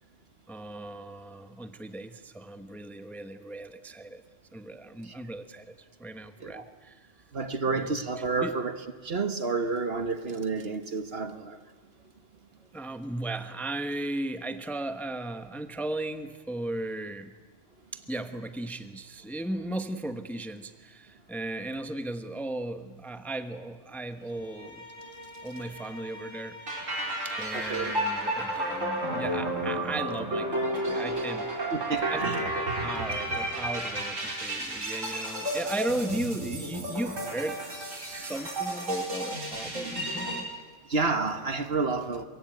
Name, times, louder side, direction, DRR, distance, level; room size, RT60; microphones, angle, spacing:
voice 1, 0.5-4.2 4.5-7.1 7.7-8.5 12.7-17.3 17.9-24.9 25.4-26.5 27.2-31.7 32.1-40.5, right 2 dB, ahead, 9 dB, 1.0 m, -36 dB
voice 2, 7.3-8.7 9.0-11.6 27.5-28.0 31.7-32.5 40.9-42.2, right 4 dB, 50° right, 9 dB, 1.6 m, -30 dB
Bowed string instrument, 24.3-29.5, left 2 dB, 65° left, 3.6 m, -48 dB
sound 1, 26.7-40.4, right 1 dB, 80° right, 4.7 m, -32 dB
24.0 x 22.5 x 9.2 m, 1.4 s
omnidirectional pair, 1.3 m